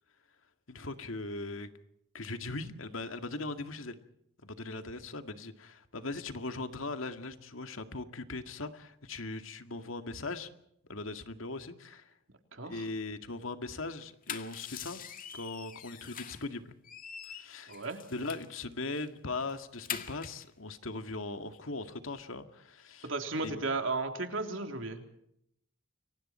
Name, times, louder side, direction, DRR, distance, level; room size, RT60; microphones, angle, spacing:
voice 1, 0.7-1.7 2.1-4.0 4.4-10.5 10.9-12.1 12.6-15.0 15.3-16.7 17.3-17.8 18.1-23.1 23.4-23.7, left 3 dB, 80° left, 8 dB, 2.1 m, -39 dB
voice 2, 12.5-12.9 17.7-18.0 23.0-25.2, right 3 dB, 70° right, 5 dB, 3.4 m, -35 dB
sound 1, 14.0-16.5 16.8-18.6 19.0-19.1 19.4-20.5, left 8 dB, 45° left, 2.0 m, -43 dB
30.0 x 23.5 x 4.4 m, 0.75 s
head